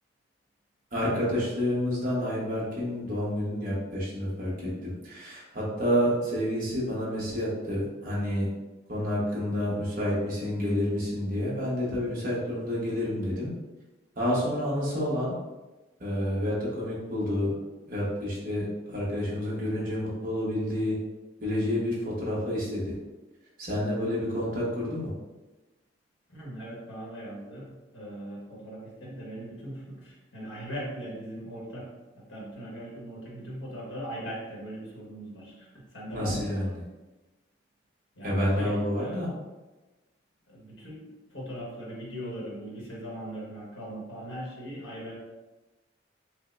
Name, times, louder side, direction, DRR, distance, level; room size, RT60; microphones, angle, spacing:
voice 1, 0.9-8.5 8.9-13.5 14.2-15.3 16.0-17.5 17.9-20.9 21.4-22.9 23.6-25.1 36.1-36.8 38.2-39.3, equal, 45° right, -6 dB, 1.3 m, -29 dB
voice 2, 26.3-36.8 38.1-39.3 40.5-45.2, equal, 90° left, -4 dB, 1.5 m, -40 dB
6.3 x 2.2 x 2.6 m, 1.1 s
head